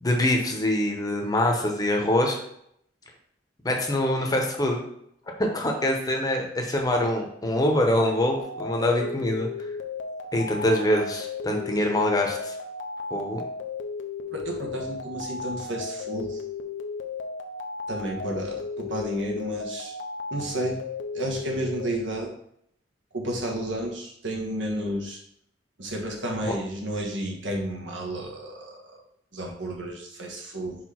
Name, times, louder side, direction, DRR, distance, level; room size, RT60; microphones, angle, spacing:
voice 1, 0.0-2.4 3.6-4.8 5.4-9.5 10.3-12.5 13.1-13.4 26.4-26.5, left 1 dB, 20° left, 2 dB, 0.9 m, -24 dB
sound 1, 8.4-21.9, left 4 dB, 80° left, 0.6 m, -35 dB
voice 2, 14.3-16.4 17.9-19.9 20.3-20.8 21.1-22.3 23.1-25.2 25.8-29.0 29.3-30.8, right 1 dB, 80° right, 0 dB, 1.5 m, -31 dB
4.9 x 4.7 x 4.4 m, 0.72 s
head